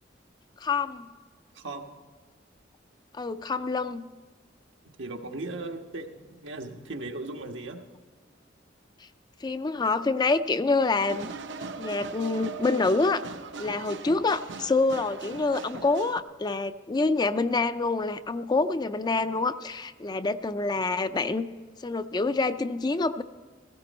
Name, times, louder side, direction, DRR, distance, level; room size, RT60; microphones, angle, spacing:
voice 1, 0.6-1.1 3.1-4.1 9.4-11.3 11.8-13.2 13.6-21.5 21.8-23.2, left 3 dB, 20° left, 11 dB, 0.4 m, -26 dB
voice 2, 1.5-1.9 5.0-7.8 13.8-13.9, right 2 dB, 85° right, 3 dB, 1.4 m, -37 dB
sound 1, 11.0-16.2, right 4 dB, 70° right, 0.7 m, -39 dB
16.0 x 16.0 x 4.2 m, 1.5 s
head